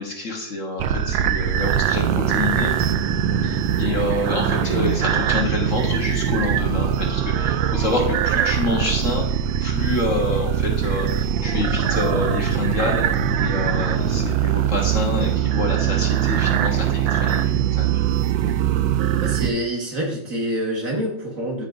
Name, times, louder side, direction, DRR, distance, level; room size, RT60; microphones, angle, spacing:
voice 1, 0.0-2.7 3.4-9.2 9.6-13.0 13.3-17.9, left 2 dB, 50° left, 0 dB, 1.5 m, -27 dB
sound 1, 0.8-19.5, right 9 dB, 85° right, 1.3 m, -22 dB
voice 2, 19.2-21.7, equal, 50° right, -1 dB, 2.0 m, -26 dB
13.0 x 5.3 x 2.6 m, 0.74 s
omnidirectional pair, 1.9 m